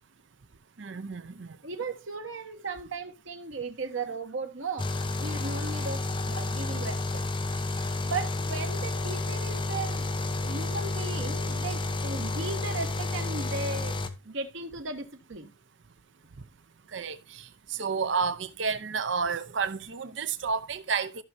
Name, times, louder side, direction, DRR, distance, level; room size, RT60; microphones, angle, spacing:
voice 1, 0.8-1.5 16.9-17.2 17.8-21.2, right 5 dB, 70° right, 0.6 m, -30 dB
voice 2, 1.6-4.9 5.2-7.2 8.0-10.1 10.4-15.5, right 3 dB, 90° right, 1.4 m, -36 dB
sound 1, 4.8-14.1, left 2 dB, 25° left, 0.9 m, -31 dB
14.5 x 5.9 x 2.7 m
head